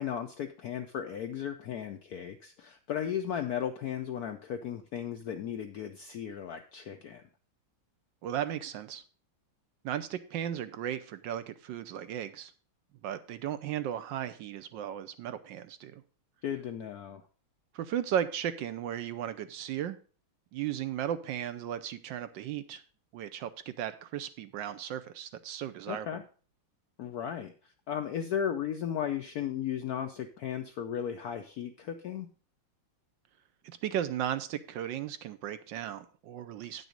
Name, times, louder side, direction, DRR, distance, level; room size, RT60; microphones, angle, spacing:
voice 1, 0.0-7.2 16.4-17.2 25.9-26.2 27.0-32.3, left 9 dB, 75° left, 7 dB, 0.8 m, -35 dB
voice 2, 8.2-9.0 9.8-12.5 13.0-16.0 17.7-20.0 20.5-22.8 23.1-26.1 33.6-36.9, right 10 dB, 75° right, 12 dB, 1.2 m, -35 dB
9.1 x 6.2 x 5.0 m, 0.40 s
omnidirectional pair, 2.2 m